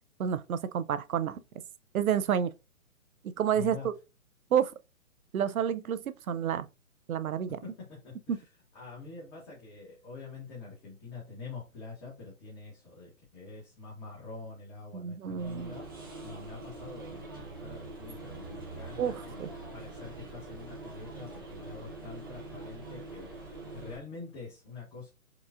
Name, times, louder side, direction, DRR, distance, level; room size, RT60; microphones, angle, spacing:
voice 1, 0.2-1.4 1.9-2.5 3.4-3.9 4.5-4.7 5.3-6.0 6.3-6.7 7.1-7.6 14.9-15.7 19.0-19.5, right 8 dB, 75° right, 0.6 m, -29 dB
voice 2, 3.5-3.9 7.5-19.4 19.7-25.1, left 4 dB, 20° left, 1.1 m, -46 dB
sound 1, 15.4-24.0, right 2 dB, 15° right, 0.4 m, -44 dB
4.6 x 2.4 x 2.4 m
hypercardioid pair, 140°, 42 cm